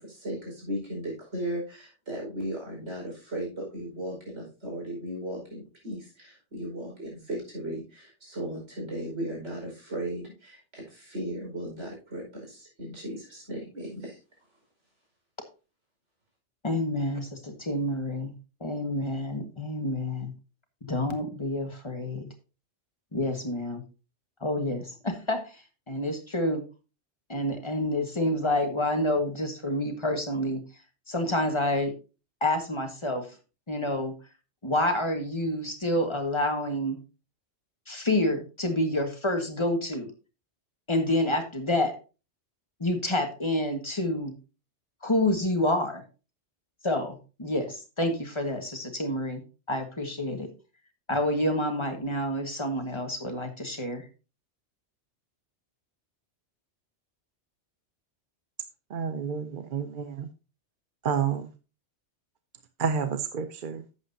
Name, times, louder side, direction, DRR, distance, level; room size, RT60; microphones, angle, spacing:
voice 1, 0.0-14.2, right 1 dB, 85° right, -1 dB, 5.2 m, -36 dB
voice 2, 16.6-18.3 18.6-20.3 20.8-22.3 23.1-23.8 24.4-26.6 27.3-30.6 31.1-31.9 32.4-33.4 33.7-34.1 34.6-37.0 37.9-40.1 40.9-41.9 42.8-44.3 45.0-46.0 46.8-50.5 51.1-54.1, left 1 dB, 25° left, 5 dB, 1.6 m, -28 dB
voice 3, 58.9-60.3 61.0-61.5 62.8-63.8, right 6 dB, 55° right, 9 dB, 0.7 m, -29 dB
11.0 x 8.3 x 2.7 m, 0.32 s
omnidirectional pair, 1.2 m